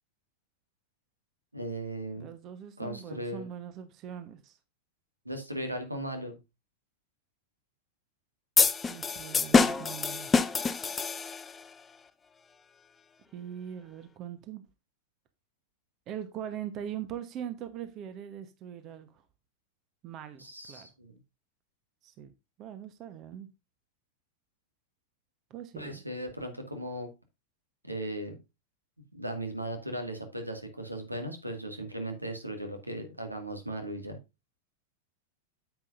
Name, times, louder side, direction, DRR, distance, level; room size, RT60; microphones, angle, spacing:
voice 1, 1.5-2.3 2.8-3.4 5.3-6.4 20.4-21.2 25.8-27.1 27.8-28.4 29.1-34.2, right 1 dB, 85° right, 2.0 m, -37 dB
voice 2, 2.2-4.6 8.8-10.3 13.3-14.6 16.1-19.2 20.0-20.9 22.0-22.3 22.6-23.5 25.5-26.0, right 10 dB, 35° right, 1.1 m, -41 dB
sound 1, 8.6-11.6, left 4 dB, 15° left, 0.6 m, -26 dB
9.5 x 8.1 x 2.6 m
figure-of-eight pair, 90°, 0 cm